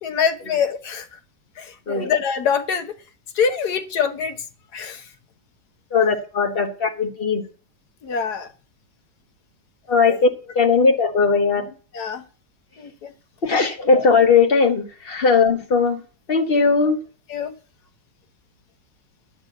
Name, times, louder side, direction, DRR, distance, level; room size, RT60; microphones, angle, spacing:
voice 1, 0.0-1.2 1.6-2.9 3.3-4.4 4.7-5.1 8.0-8.5 10.0-10.2 11.9-12.2 12.8-13.1 13.4-13.6 14.0-14.1 17.3-17.5, left 6 dB, 65° left, 1.6 m, -25 dB
voice 2, 5.9-7.4 9.9-10.3 10.5-11.7 13.4-16.0 16.3-17.0, left 5 dB, 35° left, 1.4 m, -18 dB
10.0 x 6.1 x 8.1 m
omnidirectional pair, 1.9 m